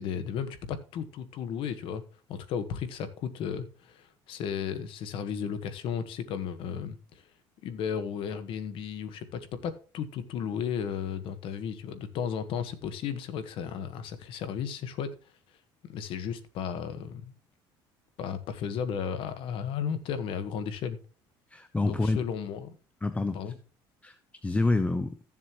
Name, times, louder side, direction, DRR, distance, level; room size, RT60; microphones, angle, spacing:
voice 1, 0.0-2.0 2.3-7.2 7.6-15.1 15.8-17.3 18.2-21.0 21.8-22.8 23.3-23.5, left 7 dB, 65° left, 1.4 m, -34 dB
voice 2, 21.5-22.2 23.0-23.5 24.0-24.2 24.4-25.2, left 2 dB, 15° left, 0.7 m, -27 dB
14.5 x 7.3 x 3.0 m
cardioid pair, 115°, 10 cm